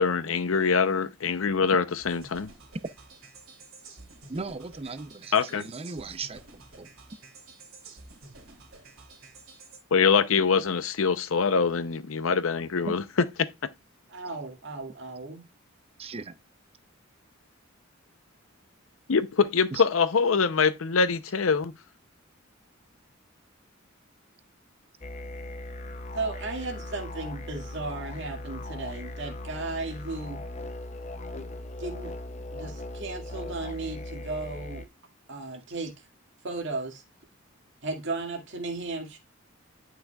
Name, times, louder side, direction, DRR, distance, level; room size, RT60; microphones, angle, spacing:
voice 1, 0.0-2.5 5.3-5.6 9.9-13.0 19.1-21.7, left 5 dB, 75° left, 0.6 m, -24 dB
sound 1, 2.0-9.8, right 3 dB, 75° right, 2.9 m, -50 dB
voice 2, 4.3-6.4 6.8-6.9 12.9-13.0 16.0-16.4 19.7-19.8, right 3 dB, 30° right, 0.6 m, -37 dB
voice 3, 14.1-15.4 26.1-30.4 31.8-32.1 32.5-34.8 35.3-36.1 36.4-37.0 37.8-39.2, right 3 dB, 60° right, 2.0 m, -35 dB
sound 2, 25.0-34.9, left 1 dB, 35° left, 0.6 m, -38 dB
10.5 x 6.0 x 2.3 m
head